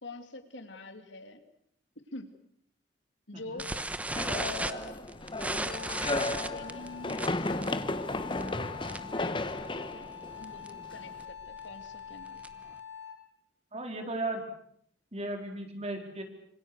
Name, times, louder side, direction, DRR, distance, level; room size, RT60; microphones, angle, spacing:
voice 1, 0.0-1.4 2.1-2.3 3.3-3.7 4.3-5.1 5.5-8.7 9.1-10.1 10.4-12.4, left 3 dB, 80° left, 8 dB, 2.9 m, -45 dB
sound 1, 3.6-9.2 9.5-9.8 10.0-10.1 10.4-10.7 11.2-12.7, right 2 dB, 10° right, 1.0 m, -36 dB
running up stairs, 4.2-11.2, left 2 dB, 25° left, 1.2 m, -34 dB
Wind instrument woodwind instrument, 5.7-13.3, left 7 dB, 65° left, 3.2 m, -45 dB
voice 2, 13.7-14.5 15.1-16.2, right 2 dB, 35° right, 4 dB, 4.2 m, -36 dB
26.5 x 25.5 x 6.8 m, 0.68 s
head